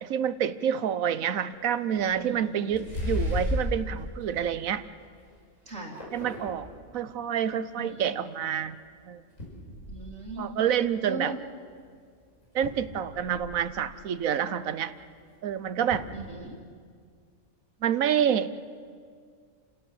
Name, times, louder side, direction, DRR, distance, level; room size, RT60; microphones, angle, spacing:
voice 1, 0.0-4.8 6.1-6.7 6.9-8.8 9.1-9.2 10.4-11.3 12.5-14.9 15.4-16.1 17.8-18.6, right 9 dB, 85° right, 14 dB, 1.2 m, -28 dB
sound 1, 1.5-1.6 2.0-2.2 2.7-3.8 4.3-4.7 5.2-5.3 5.7-6.6 8.5-8.6 9.4-10.1 11.6-11.7 12.1-12.2 12.4-13.6 15.3-15.4 15.9-16.3, left 1 dB, 75° left, 6.9 m, -33 dB
voice 2, 2.2-2.9 5.7-6.0 7.8-8.4 9.9-10.6 11.0-11.4 16.1-16.7, right 2 dB, 60° right, -5 dB, 2.5 m, -39 dB
28.5 x 17.0 x 7.8 m, 2.1 s
omnidirectional pair, 1.4 m